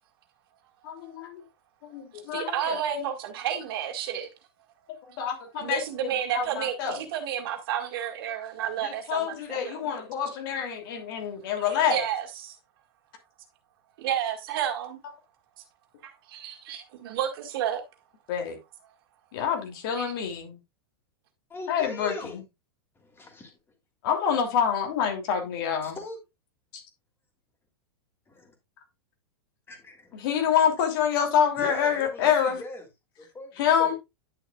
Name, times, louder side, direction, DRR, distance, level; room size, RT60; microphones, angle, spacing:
voice 1, 0.8-1.4 1.9-2.8 5.2-6.1 6.3-7.0 8.8-12.0 18.3-18.6 19.3-20.6 21.7-22.4 24.0-26.0 26.7-26.8 30.1-32.6 33.6-34.0, left 8 dB, 60° left, 2.8 m, -27 dB
voice 2, 2.3-4.3 5.6-9.9 11.7-12.5 14.0-15.0 16.0-17.8 19.9-20.1, right 9 dB, 65° right, 1.9 m, -31 dB
voice 3, 21.5-22.4 23.0-23.5 25.8-26.2 28.3-28.5 29.7-30.2 31.6-32.9 33.2-33.9, left 2 dB, 15° left, 3.0 m, -41 dB
10.5 x 6.7 x 2.4 m
hypercardioid pair, 115°, 13 cm